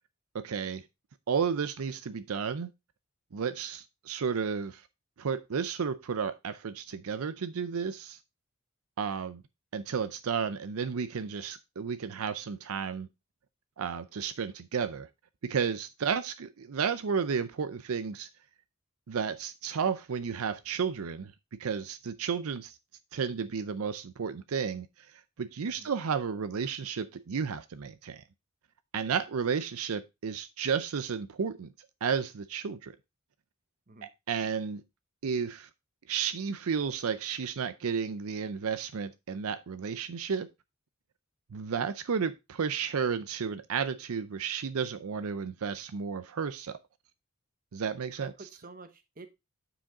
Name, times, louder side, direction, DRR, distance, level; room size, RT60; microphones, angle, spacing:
voice 1, 0.3-0.8 1.3-2.7 3.3-4.8 5.2-8.2 9.0-9.4 9.7-13.1 13.8-15.1 15.4-18.3 19.1-21.3 21.6-22.8 23.1-28.2 28.9-31.7 32.0-33.0 34.3-34.8 35.2-35.7 36.1-40.5 41.5-46.8 47.7-48.3, right 6 dB, 80° right, 0.5 m, -32 dB
voice 2, 48.2-49.3, right 3 dB, 40° right, 1.0 m, -49 dB
8.8 x 5.0 x 3.5 m
head